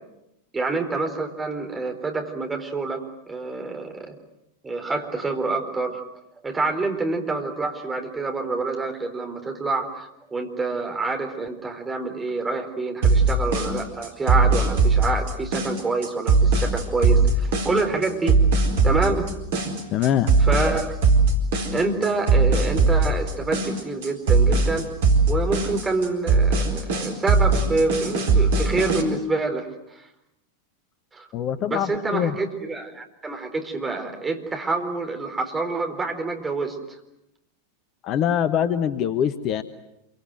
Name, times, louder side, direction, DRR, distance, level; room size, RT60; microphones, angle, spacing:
voice 1, 0.5-4.1 4.6-6.0 6.4-18.4 18.8-19.3 20.5-20.9 21.7-24.9 25.3-30.1 31.1-31.3 31.7-36.8, right 3 dB, 15° right, 4 dB, 4.2 m, -27 dB
sound 1, 13.0-29.0, right 3 dB, 55° right, 4.3 m, -20 dB
voice 2, 19.9-20.3 31.3-32.3 38.0-39.6, left 9 dB, 35° left, 12 dB, 1.2 m, -23 dB
27.5 x 24.5 x 7.9 m, 0.85 s
figure-of-eight pair, 90°, 0 cm